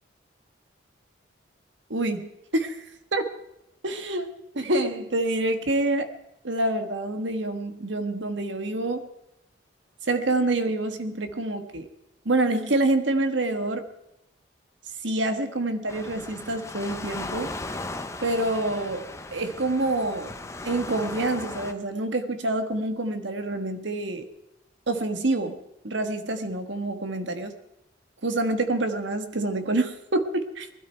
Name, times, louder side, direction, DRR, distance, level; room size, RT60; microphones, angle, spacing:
voice 1, 1.9-2.8 3.1-3.2 3.8-4.3 4.5-6.1 6.4-9.1 10.1-11.9 12.2-13.8 15.0-17.5 18.2-20.3 20.6-24.2 24.9-25.6 25.8-27.5 28.2-30.7, right 2 dB, 75° right, 8 dB, 1.5 m, -27 dB
Waves surf, 15.9-21.7, left 2 dB, 15° left, 0.8 m, -37 dB
20.5 x 12.5 x 4.5 m, 0.87 s
head